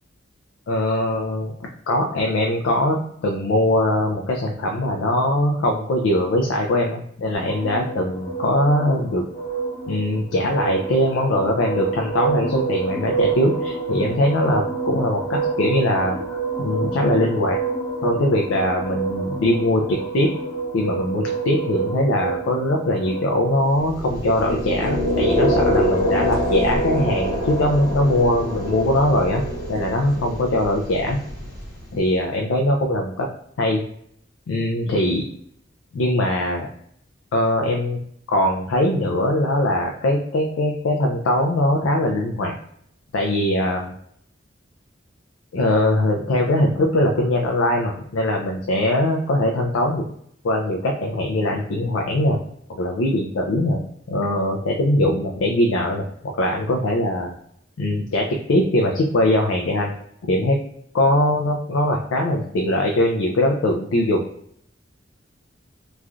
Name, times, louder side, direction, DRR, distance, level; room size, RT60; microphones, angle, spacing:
voice 1, 0.7-1.5 1.9-9.2 9.9-17.6 18.0-20.3 20.7-29.4 29.7-31.2 31.9-33.3 33.6-33.8 34.5-35.2 35.9-36.7 37.3-38.0 38.3-42.5 43.1-43.9 45.5-50.1 50.4-52.4 52.7-53.8 54.1-56.0 56.4-57.3 57.8-59.9 60.2-60.6 60.9-64.3, left 1 dB, 85° left, 1 dB, 0.4 m, -21 dB
sound 1, 7.3-23.8, right 4 dB, 40° left, 0.9 m, -28 dB
sound 2, 23.8-31.9, equal, 20° left, 1.3 m, -24 dB
3.0 x 2.3 x 2.4 m, 0.68 s
head